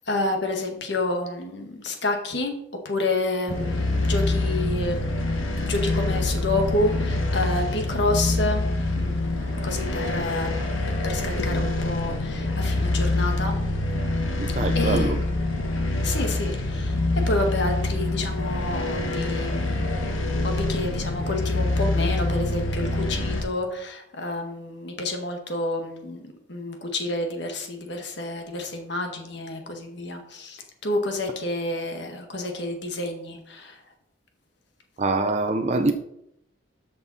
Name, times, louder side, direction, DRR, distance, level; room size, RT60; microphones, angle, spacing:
voice 1, 0.1-2.5 2.8-5.1 5.5-8.7 8.9-10.5 10.9-13.6 14.7-15.2 16.0-19.9 20.4-33.8, left 2 dB, 60° left, 1.7 m, -29 dB
sound 1, 3.5-23.4, left 2 dB, 85° left, 1.5 m, -25 dB
voice 2, 14.4-15.2 35.0-35.9, right 2 dB, 35° right, 0.6 m, -24 dB
13.5 x 5.5 x 4.2 m
head